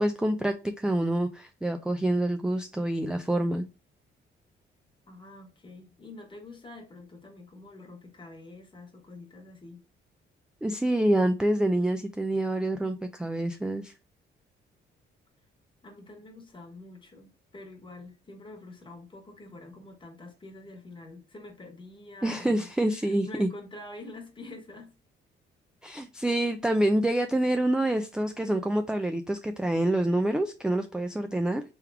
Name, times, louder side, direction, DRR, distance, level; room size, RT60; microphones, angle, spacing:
voice 1, 0.0-3.6 10.6-13.9 22.2-23.5 25.8-31.6, right 1 dB, 5° right, 0.4 m, -27 dB
voice 2, 5.1-9.8 15.8-24.9, left 2 dB, 25° left, 1.3 m, -46 dB
3.5 x 3.4 x 3.3 m
cardioid pair, 90°, 20 cm